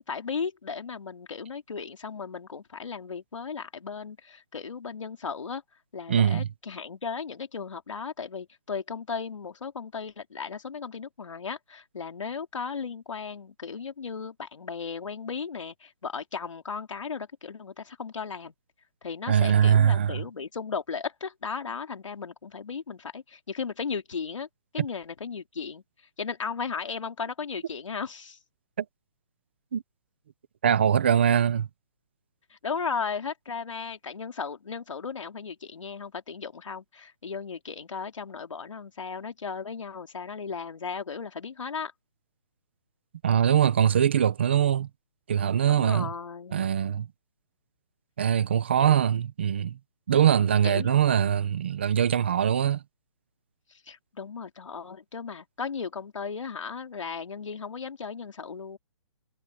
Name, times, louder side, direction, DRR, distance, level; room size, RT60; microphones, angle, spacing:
voice 1, 0.0-5.6 5.9-18.5 19.0-24.5 24.7-25.8 26.2-28.4 32.5-41.9 45.7-46.6 48.8-49.0 50.2-51.4 53.7-58.8, left 5 dB, 80° left, 3.4 m, -36 dB
voice 2, 6.1-6.5 19.3-20.2 28.8-28.9 29.7-29.8 30.6-31.7 43.2-44.9 45.3-46.1 46.5-47.1 48.2-49.8 50.1-52.8, right 9 dB, 20° right, 0.6 m, -22 dB
hypercardioid pair, 180°, 16 cm